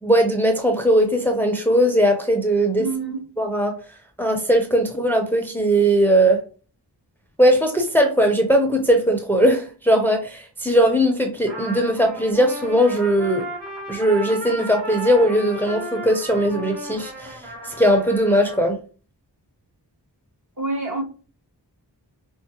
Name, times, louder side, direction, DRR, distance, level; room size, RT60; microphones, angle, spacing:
voice 1, 0.0-2.9 3.4-3.7 4.2-6.4 7.4-13.5 13.9-18.8, equal, 5° left, 0.7 m, -19 dB
voice 2, 2.8-3.3 20.6-21.0, right 3 dB, 45° right, 1.1 m, -26 dB
Trumpet, 11.5-18.7, right 1 dB, 75° right, 1.2 m, -34 dB
4.8 x 2.0 x 2.9 m
wide cardioid pair, 40°, 43 cm